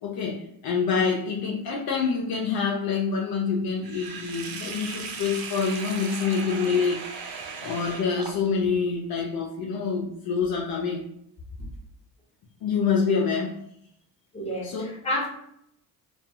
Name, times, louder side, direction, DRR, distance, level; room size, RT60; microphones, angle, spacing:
voice 1, 0.0-7.0 7.6-11.1 12.6-13.6 14.6-14.8, left 5 dB, 50° left, -2 dB, 0.6 m, -26 dB
Sink (filling or washing), 3.8-8.7, right 5 dB, 50° right, 0.6 m, -37 dB
voice 2, 14.3-15.3, left 1 dB, 15° left, -3 dB, 1.0 m, -30 dB
2.5 x 2.3 x 2.7 m, 0.73 s
supercardioid pair, 80°, 45 cm